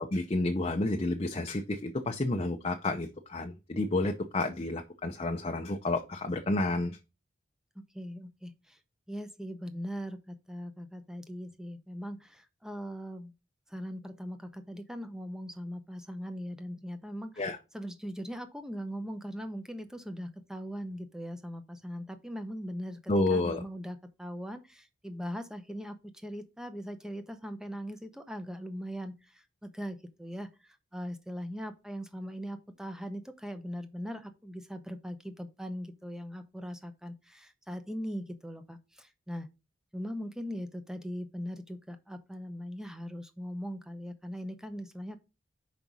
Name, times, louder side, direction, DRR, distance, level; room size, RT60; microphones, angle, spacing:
voice 1, 0.0-7.0 17.4-17.6 23.1-23.6, left 2 dB, 30° left, 0.6 m, -30 dB
voice 2, 7.7-8.8 9.1-13.3 13.7-17.5 17.7-39.5 39.9-45.2, equal, 5° right, 0.7 m, -40 dB
5.4 x 5.1 x 6.0 m
head